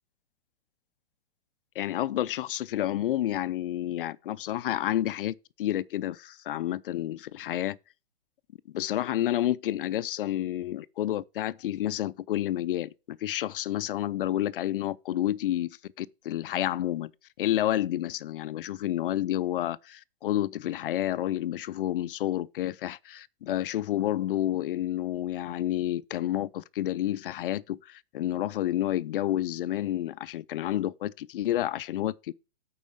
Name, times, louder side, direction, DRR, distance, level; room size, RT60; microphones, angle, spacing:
voice 1, 1.8-7.8 8.7-17.1 17.4-32.3, left 13 dB, 65° left, 0.5 m, -30 dB
8.4 x 4.7 x 5.0 m
hypercardioid pair, 145°, 30 cm